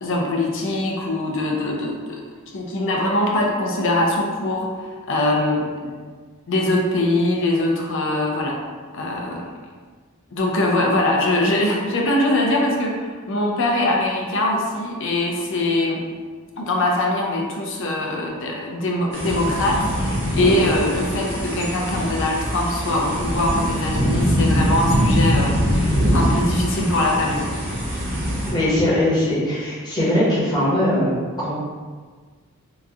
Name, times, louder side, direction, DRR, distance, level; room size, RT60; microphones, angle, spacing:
voice 1, 0.0-2.2 2.5-4.7 5.1-5.7 6.5-8.6 8.9-9.5 10.3-16.0 16.6-27.5, left 1 dB, 60° left, -1 dB, 0.6 m, -22 dB
sound 1, 19.1-28.5, equal, 30° right, 1.0 m, -22 dB
voice 2, 28.5-31.6, left 1 dB, 20° left, -10 dB, 1.3 m, -20 dB
3.0 x 2.5 x 3.6 m, 1.5 s
head